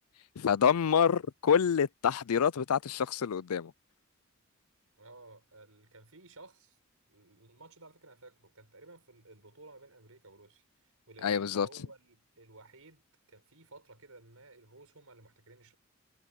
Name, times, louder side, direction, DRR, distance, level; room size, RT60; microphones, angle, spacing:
voice 1, 0.4-3.7 11.2-11.7, left 7 dB, 90° left, 0.5 m, -27 dB
voice 2, 5.0-6.8 7.1-13.0 13.3-15.8, right 2 dB, 80° right, 5.3 m, -55 dB
head